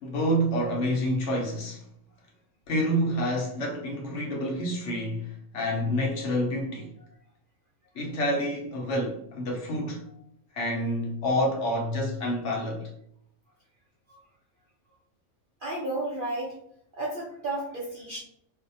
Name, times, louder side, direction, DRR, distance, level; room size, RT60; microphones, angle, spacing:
voice 1, 0.0-1.8 2.7-6.9 8.0-10.1 10.5-12.9, equal, 65° left, 0.8 m, -28 dB
voice 2, 15.6-16.5 16.9-18.2, right 2 dB, 60° right, 0.5 m, -32 dB
2.5 x 2.0 x 2.6 m
omnidirectional pair, 1.4 m